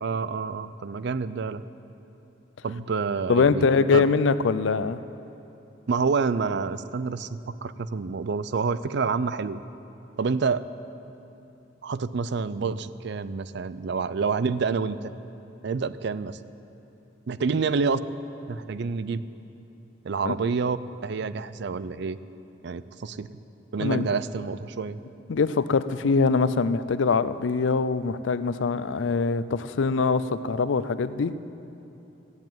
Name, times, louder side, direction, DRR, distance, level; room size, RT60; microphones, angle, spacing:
voice 1, 0.0-1.6 2.6-4.0 5.9-9.6 10.2-10.6 11.8-15.1 15.6-16.4 17.3-18.0 18.5-19.2 20.0-20.8 21.0-22.2 22.6-23.3 23.7-25.0, right 5 dB, 65° right, 15 dB, 0.5 m, -28 dB
voice 2, 3.3-5.0 20.3-20.4 23.8-24.1 25.3-31.3, left 4 dB, 85° left, 14 dB, 0.5 m, -23 dB
14.5 x 8.0 x 9.0 m, 2.9 s
head